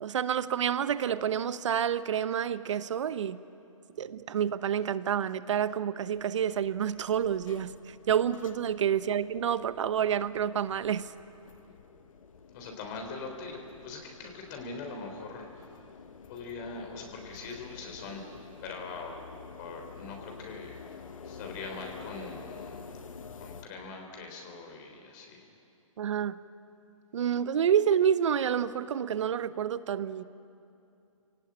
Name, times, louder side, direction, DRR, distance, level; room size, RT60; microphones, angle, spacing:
voice 1, 0.0-3.4 4.0-11.1 26.0-26.4 27.1-30.2, right 8 dB, 60° right, 15 dB, 0.9 m, -28 dB
sound 1, 6.0-23.6, left 5 dB, 70° left, 1.3 m, -49 dB
voice 2, 12.5-15.7 16.3-18.3 18.6-19.3 19.6-20.8 21.2-23.0 23.4-25.5, left 3 dB, 35° left, 3 dB, 3.6 m, -42 dB
25.0 x 17.5 x 8.8 m, 2.7 s
hypercardioid pair, 145°, 18 cm